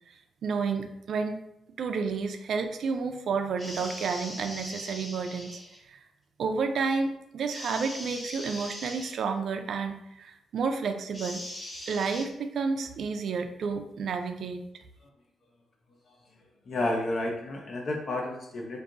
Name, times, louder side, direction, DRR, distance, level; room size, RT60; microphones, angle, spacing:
voice 1, 0.4-1.4 1.8-5.6 5.9-6.0 6.4-11.4 11.9-14.6, right 5 dB, 60° right, 6 dB, 0.4 m, -30 dB
sound 1, 3.6-5.8 7.5-9.1 11.1-12.3, left 1 dB, 15° left, 1.1 m, -41 dB
voice 2, 16.7-18.8, left 2 dB, 45° left, 2 dB, 0.5 m, -31 dB
5.9 x 2.6 x 2.6 m, 0.83 s
wide cardioid pair, 155°, 0 cm